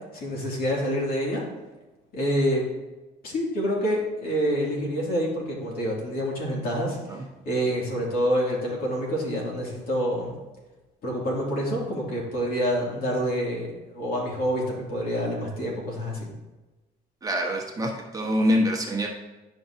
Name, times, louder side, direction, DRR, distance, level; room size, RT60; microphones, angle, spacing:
voice 1, 0.1-1.4 2.1-2.6 3.2-10.3 11.0-16.3, equal, 60° left, -3 dB, 2.6 m, -27 dB
voice 2, 17.2-19.1, equal, 20° right, 0 dB, 1.2 m, -25 dB
10.0 x 5.6 x 2.8 m, 1.1 s
cardioid pair, 110°, 17 cm